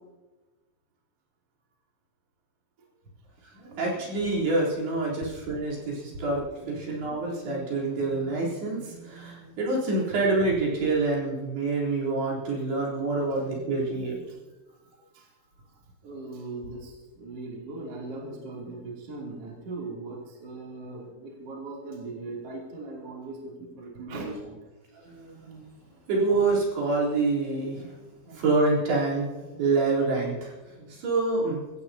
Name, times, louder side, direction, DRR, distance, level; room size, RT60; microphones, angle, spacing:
voice 1, 3.6-14.2 25.0-25.6 26.1-27.9 28.3-31.6, right 3 dB, 60° right, -5 dB, 5.6 m, -27 dB
voice 2, 16.0-24.6, right 3 dB, 35° right, -3 dB, 3.2 m, -39 dB
24.5 x 15.5 x 2.8 m, 1.2 s
omnidirectional pair, 5.6 m